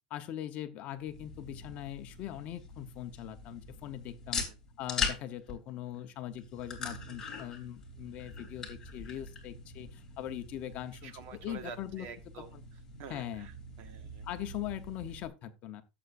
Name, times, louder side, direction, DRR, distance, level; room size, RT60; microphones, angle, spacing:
voice 1, 0.1-4.5 4.8-11.1 11.4-12.1 12.5-12.6 13.1-13.5 14.2-15.8, left 12 dB, 30° left, 0.9 m, -41 dB
sound 1, 1.0-15.2, left 4 dB, 10° left, 3.0 m, -42 dB
voice 2, 11.0-14.3, right 6 dB, 40° right, 1.6 m, -48 dB
16.0 x 8.0 x 2.6 m
supercardioid pair, 165°, 4 cm